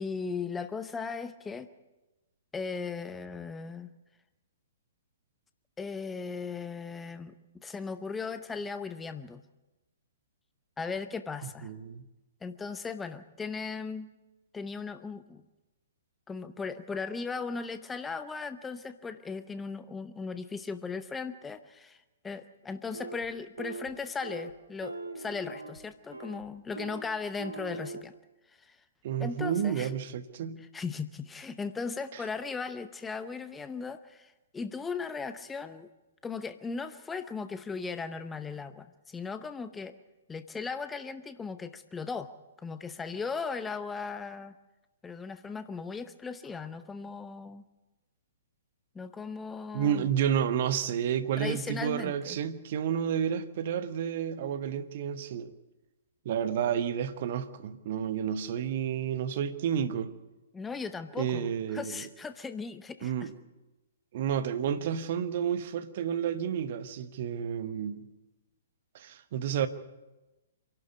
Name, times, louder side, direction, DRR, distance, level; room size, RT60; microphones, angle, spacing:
voice 1, 0.0-1.7 2.5-3.9 5.8-7.3 7.6-9.4 10.8-11.7 12.4-14.1 14.5-15.4 16.3-28.1 28.5-28.8 29.2-29.9 30.7-35.9 36.2-40.0 40.3-42.3 42.6-44.5 45.0-47.6 48.9-50.1 51.4-52.4 60.5-63.3, left 5 dB, 10° left, 0.8 m, -37 dB
voice 2, 11.6-12.0 29.0-30.7 49.7-55.5 56.2-60.2 61.2-62.0 63.0-63.3 64.1-68.0 68.9-69.7, right 8 dB, 45° right, 1.2 m, -30 dB
sound 1, 22.9-23.3 23.6-23.9 24.2-24.5 24.8-25.8 26.1-26.4 26.8-27.1 27.4-28.0, right 3 dB, 75° right, 2.0 m, -40 dB
27.0 x 12.0 x 8.3 m
figure-of-eight pair, 120°, 0 cm